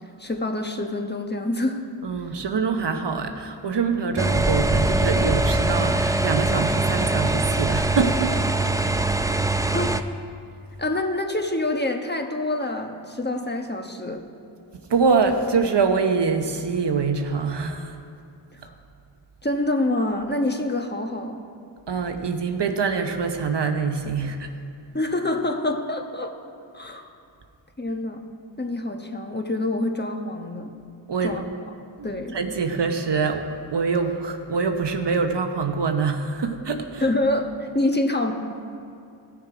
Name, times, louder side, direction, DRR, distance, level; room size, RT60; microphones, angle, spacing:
voice 1, 0.2-1.8 9.7-9.9 10.8-14.3 18.5-18.7 19.4-21.4 24.9-26.3 26.7-27.1 27.8-28.2 28.6-30.8 31.2-31.5 32.0-32.4 37.0-38.3, left 1 dB, 20° left, 4 dB, 1.2 m, -26 dB
voice 2, 2.0-8.5 8.8-9.0 14.9-18.0 21.9-24.5 31.1-31.4 32.0-37.0, right 5 dB, 60° right, 6 dB, 1.0 m, -24 dB
sound 1, 4.2-10.0, right 2 dB, 5° right, 0.5 m, -22 dB
16.0 x 6.8 x 5.0 m, 2.5 s
cardioid pair, 55°, 48 cm